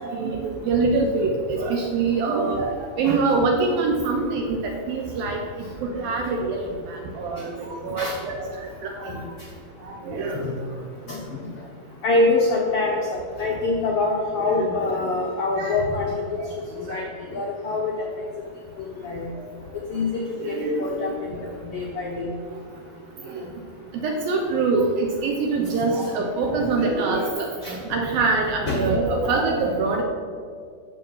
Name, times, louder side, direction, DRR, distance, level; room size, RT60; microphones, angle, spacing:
voice 1, 0.0-5.4 5.8-8.5 8.8-9.3 9.8-10.7 14.4-14.9 15.5-15.8 16.4-16.5 16.9-17.0 20.4-20.9 22.5-22.6 23.3-23.4 23.9-30.0, right 3 dB, 75° right, 2 dB, 2.6 m, -25 dB
voice 2, 10.1-10.5 11.1-11.4 12.0-16.1 16.9-17.0 17.3-17.9 19.0-19.2 19.9-21.4 21.7-22.3 27.6-28.0 28.7-28.8, left 3 dB, 80° left, -1 dB, 1.3 m, -25 dB
14.0 x 7.0 x 5.6 m, 2.1 s
omnidirectional pair, 4.5 m